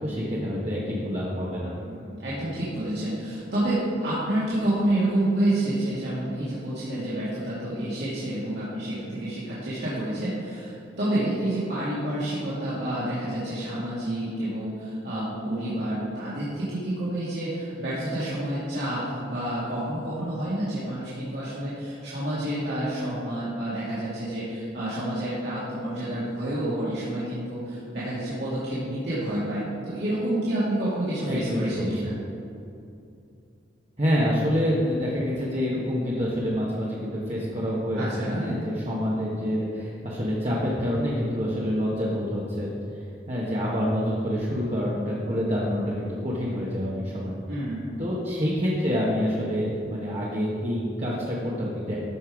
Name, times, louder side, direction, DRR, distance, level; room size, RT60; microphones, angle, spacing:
voice 1, 0.0-1.7 31.3-31.9 34.0-47.3 48.0-52.0, equal, 35° right, -6 dB, 1.4 m, -27 dB
voice 2, 1.7-32.1 38.0-38.4 47.5-47.9, right 1 dB, 65° right, -11 dB, 2.5 m, -29 dB
14.0 x 5.7 x 4.9 m, 2.6 s
head